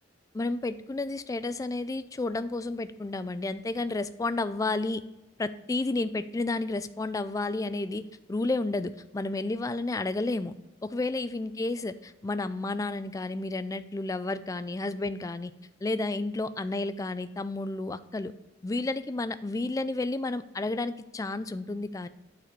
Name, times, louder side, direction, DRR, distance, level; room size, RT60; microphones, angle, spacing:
voice 1, 0.3-5.0 5.4-8.0 8.3-10.5 10.8-15.5 15.8-18.3 18.6-22.1, left 2 dB, 20° left, 13 dB, 0.3 m, -31 dB
9.0 x 4.1 x 4.4 m, 1.0 s
head